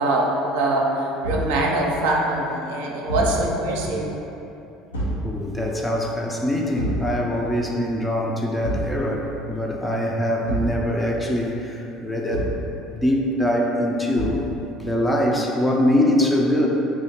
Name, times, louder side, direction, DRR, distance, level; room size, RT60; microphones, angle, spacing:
voice 1, 0.0-4.0, right 2 dB, 65° right, -2 dB, 0.5 m, -23 dB
Thump thud, 1.2-1.6 3.1-3.4 4.9-5.3 6.8-7.1 8.6-9.0 10.5-10.8 12.3-12.7 14.2-14.5, right 1 dB, 80° left, 0.7 m, -27 dB
voice 2, 5.2-12.5 12.9-14.4 14.8-16.7, left 1 dB, 10° left, -1 dB, 0.5 m, -23 dB
3.7 x 2.8 x 4.3 m, 2.9 s
figure-of-eight pair, 65°, 0 cm